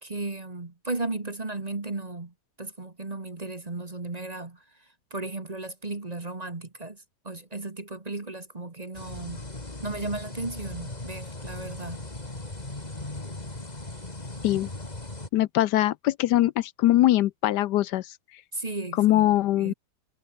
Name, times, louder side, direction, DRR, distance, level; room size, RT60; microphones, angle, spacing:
voice 1, 0.0-4.6 5.1-9.4 9.8-12.0 18.5-19.3 19.6-19.7, right 2 dB, 25° right, 1.5 m, -35 dB
sound 1, 8.9-15.3, left 2 dB, 25° left, 3.1 m, -38 dB
voice 2, 15.3-18.2 19.0-19.7, left 14 dB, 75° left, 1.2 m, -22 dB
omnidirectional pair, 1.9 m